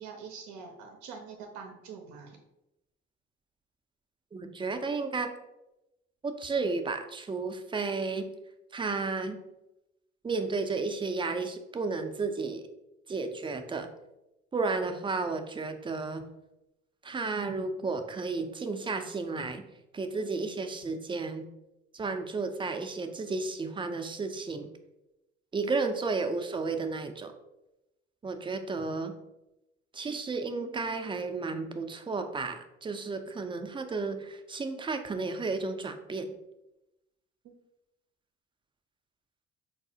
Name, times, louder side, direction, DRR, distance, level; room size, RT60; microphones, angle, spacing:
voice 1, 0.0-2.4 37.4-37.5, right 5 dB, 70° right, 3 dB, 0.5 m, -45 dB
voice 2, 4.3-5.3 6.2-8.3 8.7-9.4 10.2-12.6 13.1-13.9 14.5-16.3 17.0-19.6 19.9-21.5 21.9-24.7 25.5-27.3 28.2-29.1 29.9-36.3, right 4 dB, 15° right, 7 dB, 0.4 m, -33 dB
4.7 x 2.0 x 2.6 m, 0.92 s
hypercardioid pair, 55°, 29 cm